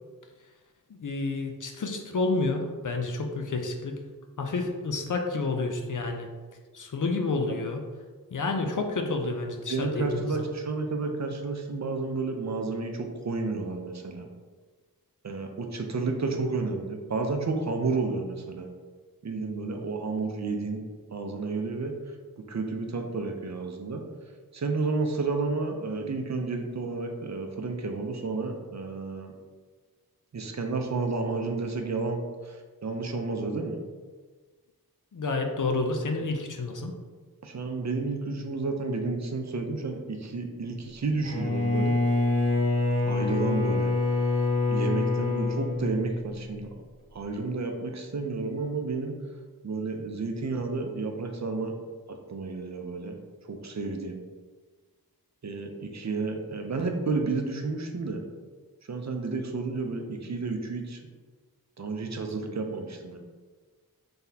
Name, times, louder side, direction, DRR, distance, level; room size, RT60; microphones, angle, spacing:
voice 1, 0.9-4.0 4.4-6.3 6.7-7.8 8.3-10.3 35.1-36.9, left 3 dB, 55° left, 4 dB, 0.6 m, -29 dB
voice 2, 9.7-14.3 15.2-18.7 19.2-20.8 21.1-21.9 22.5-24.0 24.5-29.3 30.3-32.6 32.8-33.8 37.4-42.0 43.0-43.9 44.7-46.7 47.1-49.1 49.6-51.7 52.1-53.1 53.4-54.2 55.4-58.2 58.9-61.0 61.8-63.2, right 3 dB, 50° right, 4 dB, 0.5 m, -31 dB
Bowed string instrument, 41.2-46.6, left 3 dB, 35° left, 1.5 m, -26 dB
3.9 x 3.4 x 2.8 m, 1.4 s
wide cardioid pair, 45°, 37 cm